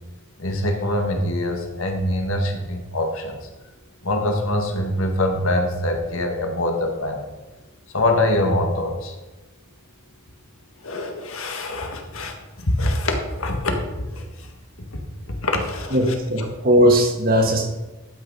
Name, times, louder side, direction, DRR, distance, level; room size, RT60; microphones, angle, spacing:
voice 1, 0.4-3.4 4.0-7.3 7.9-9.1 10.8-12.3 12.6-13.7 14.1-14.2 15.4-16.5, left 1 dB, 80° left, 3 dB, 1.8 m, -24 dB
voice 2, 15.9-17.7, equal, 45° right, 3 dB, 1.7 m, -18 dB
12.0 x 6.3 x 5.3 m, 1.1 s
head